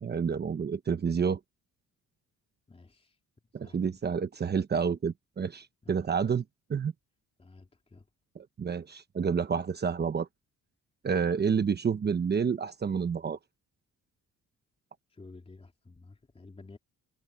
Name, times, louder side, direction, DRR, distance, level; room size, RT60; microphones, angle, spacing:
voice 1, 0.0-1.4 3.5-6.4 6.7-6.9 8.3-10.3 11.0-13.4, right 6 dB, 30° right, 1.0 m, -29 dB
voice 2, 2.7-3.2 3.6-4.0 5.8-6.1 7.4-8.1 15.1-16.8, left 3 dB, 20° left, 3.6 m, -52 dB
cardioid pair, 135°, 32 cm